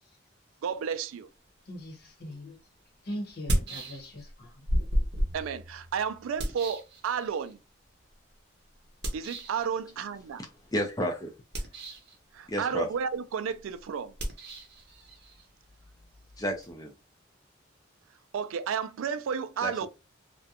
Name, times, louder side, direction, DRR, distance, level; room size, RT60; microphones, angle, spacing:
voice 1, 0.6-1.3 5.3-7.6 9.1-10.4 12.3-14.1 18.3-19.9, right 7 dB, 80° right, 0.3 m, -32 dB
voice 2, 1.7-2.6 3.0-4.6, equal, 50° left, 0.8 m, -40 dB
sound 1, 2.3-2.4 3.3-4.3 4.7-7.5 9.0-9.7 11.4-12.2 14.1-16.7, equal, 55° right, 0.7 m, -33 dB
voice 3, 10.7-11.3 12.5-12.9 16.4-16.9 19.6-19.9, equal, 20° left, 0.4 m, -31 dB
2.4 x 2.1 x 2.7 m
head